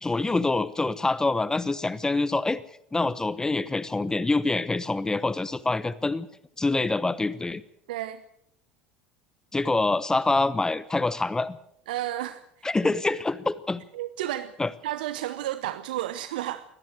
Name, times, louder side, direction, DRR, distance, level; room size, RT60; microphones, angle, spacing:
voice 1, 0.0-2.6 2.9-6.3 6.6-7.6 9.5-11.6 12.6-13.8 14.6-14.7, left 3 dB, 10° left, 17 dB, 1.0 m, -25 dB
voice 2, 7.9-8.2 11.9-12.4 13.9-14.5 14.8-16.6, right 13 dB, 65° right, 13 dB, 0.9 m, -31 dB
23.0 x 18.0 x 6.4 m, 0.73 s
figure-of-eight pair, 70°, 5 cm